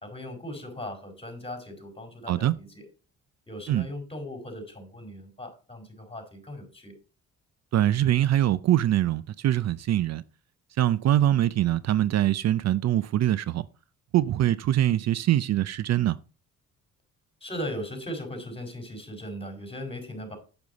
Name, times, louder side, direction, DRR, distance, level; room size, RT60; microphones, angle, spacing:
voice 1, 0.0-2.9 3.5-7.0 17.4-20.4, equal, 20° left, 4.7 m, -38 dB
voice 2, 7.7-10.2 10.8-13.7 14.1-16.2, right 12 dB, 60° right, 0.5 m, -23 dB
8.5 x 8.1 x 4.0 m
cardioid pair, 90°, 30 cm